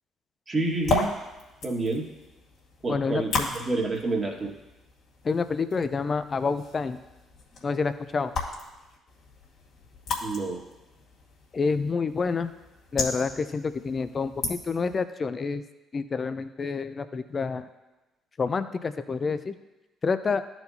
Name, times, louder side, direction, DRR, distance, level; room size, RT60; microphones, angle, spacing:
voice 1, 0.5-1.1 1.6-2.1 2.8-4.5 10.2-10.6, right 2 dB, 35° right, 0 dB, 1.7 m, -28 dB
sound 1, 0.6-15.0, left 3 dB, 65° left, 2.0 m, -36 dB
voice 2, 2.9-3.5 5.2-7.0 7.6-8.3 11.5-12.5 12.9-15.6 15.9-17.7 18.4-19.6 20.0-20.4, left 4 dB, 40° left, 11 dB, 0.5 m, -28 dB
12.5 x 4.5 x 2.8 m, 1.1 s
hypercardioid pair, 55°, 0 cm